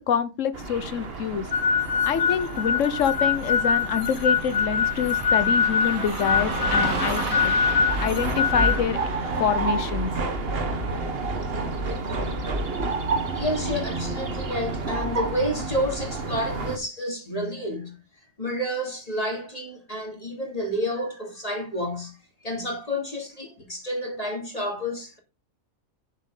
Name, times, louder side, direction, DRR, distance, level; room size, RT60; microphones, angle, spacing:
voice 1, 0.0-1.5 2.0-7.5 8.0-9.0 9.4-10.1, left 7 dB, 65° left, 1.3 m, -26 dB
sound 1, 0.5-16.8, right 3 dB, 45° right, 1.5 m, -30 dB
Car passing by / Traffic noise roadway noise, 0.7-14.9, right 3 dB, 80° right, 2.5 m, -37 dB
sound 2, 1.5-8.8, left 6 dB, 45° left, 0.8 m, -23 dB
voice 2, 13.3-17.9 18.4-22.2 22.4-25.2, equal, 25° left, 3.1 m, -30 dB
11.0 x 7.3 x 3.9 m
omnidirectional pair, 1.4 m